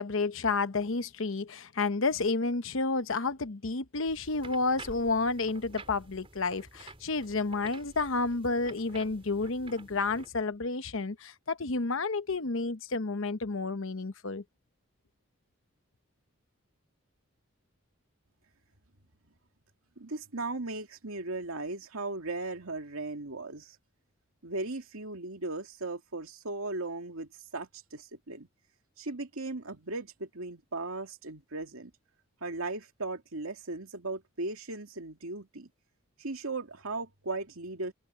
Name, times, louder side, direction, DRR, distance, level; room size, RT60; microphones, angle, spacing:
voice 1, 0.0-14.4, left 3 dB, 70° left, 0.9 m, -30 dB
sound 1, 4.1-10.3, right 2 dB, 25° right, 4.2 m, -50 dB
voice 2, 20.0-23.8 24.4-28.5 29.0-31.9 32.4-35.7 36.2-37.9, right 2 dB, 80° right, 2.4 m, -37 dB
head